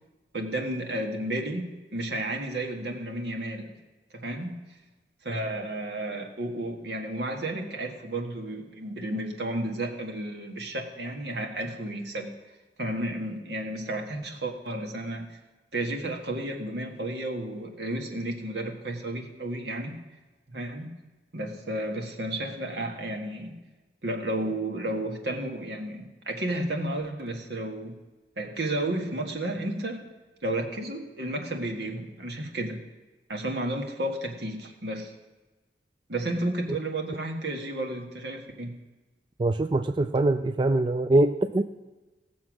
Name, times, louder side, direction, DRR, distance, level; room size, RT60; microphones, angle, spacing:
voice 1, 0.3-1.7 1.9-3.7 4.1-4.5 5.2-12.3 12.8-15.4 15.7-20.0 20.5-20.9 21.3-23.6 24.0-28.0 28.4-30.0 30.4-32.8 33.3-35.1 36.1-38.7, right 1 dB, 70° right, 2 dB, 1.7 m, -32 dB
voice 2, 39.4-41.6, right 2 dB, 25° right, 9 dB, 0.3 m, -23 dB
17.5 x 7.1 x 6.2 m, 1.2 s
head